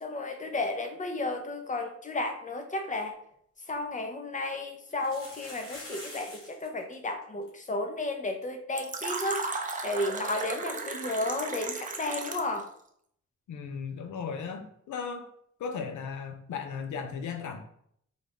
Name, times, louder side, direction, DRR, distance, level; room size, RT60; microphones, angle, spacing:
voice 1, 0.0-3.2 3.7-9.5 9.8-12.7, left 2 dB, 25° left, 5 dB, 0.6 m, -33 dB
sound 1, 3.3-3.4 3.7-3.8 4.9-6.7 6.9-7.0 7.2-7.5 8.0-8.1 8.4-8.5 10.5-10.6, left 1 dB, 50° left, 1.4 m, -45 dB
Fill (with liquid), 8.8-12.6, right 3 dB, 25° right, 0.5 m, -35 dB
voice 2, 13.5-15.3 15.6-17.6, left 6 dB, 85° left, 6 dB, 0.6 m, -36 dB
3.9 x 2.3 x 3.4 m, 0.68 s
cardioid pair, 85°, 29 cm